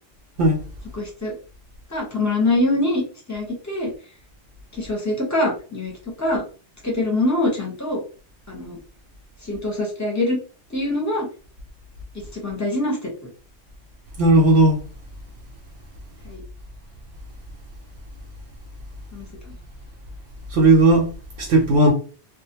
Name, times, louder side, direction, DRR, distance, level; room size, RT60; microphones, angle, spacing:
voice 1, 0.9-1.3 1.9-3.0 3.3-3.9 4.7-5.9 6.2-6.4 6.8-8.0 8.5-8.8 9.4-10.4 10.7-11.3 12.3-13.1 16.2-16.4 19.1-19.5, left 2 dB, 20° left, 0.7 m, -24 dB
voice 2, 14.2-14.8 20.5-21.1 21.4-21.9, right 2 dB, 85° right, 0.9 m, -15 dB
2.5 x 2.0 x 2.8 m
omnidirectional pair, 1.2 m